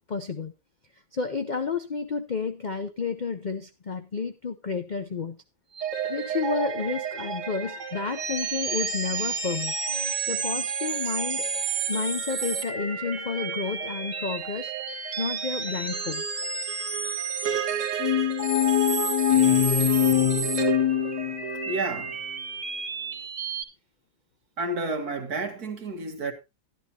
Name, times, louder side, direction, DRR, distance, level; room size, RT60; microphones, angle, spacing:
voice 1, 0.1-0.5 1.1-5.4 6.1-9.7 10.3-11.5 11.9-14.7 15.2-16.2, left 5 dB, 65° left, 0.4 m, -31 dB
sound 1, 5.7-23.6, right 6 dB, 45° right, 2.0 m, -31 dB
sound 2, 18.0-21.8, left 12 dB, 85° left, 1.4 m, -23 dB
voice 2, 21.7-22.2 24.6-26.3, right 2 dB, 60° right, 2.1 m, -30 dB
12.5 x 11.5 x 2.8 m
omnidirectional pair, 1.8 m